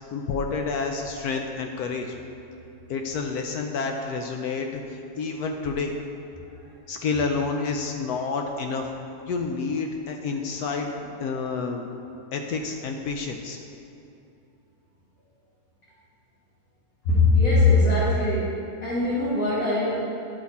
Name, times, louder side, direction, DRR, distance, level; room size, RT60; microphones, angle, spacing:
voice 1, 0.1-2.1 2.9-5.9 6.9-8.9 9.3-10.9 11.2-11.9 12.3-13.6, left 4 dB, 75° left, 3 dB, 0.9 m, -29 dB
voice 2, 17.1-18.5 18.8-19.9, left 3 dB, 55° left, -9 dB, 1.8 m, -21 dB
10.5 x 4.1 x 4.1 m, 2.7 s
omnidirectional pair, 2.0 m